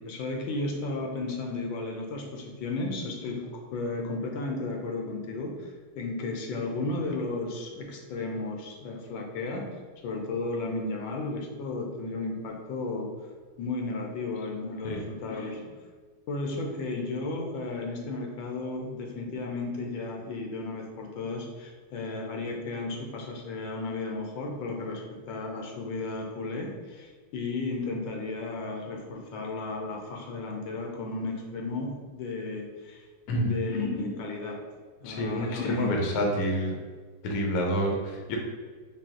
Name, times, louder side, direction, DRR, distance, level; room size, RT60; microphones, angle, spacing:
voice 1, 0.0-9.7 10.0-13.1 13.6-15.7 16.3-33.0 33.3-34.6 35.0-35.9, left 3 dB, 80° left, 1 dB, 1.4 m, -34 dB
voice 2, 35.0-36.8 37.2-38.4, equal, 65° left, 0 dB, 1.0 m, -28 dB
4.0 x 2.3 x 3.6 m, 1.5 s
omnidirectional pair, 2.1 m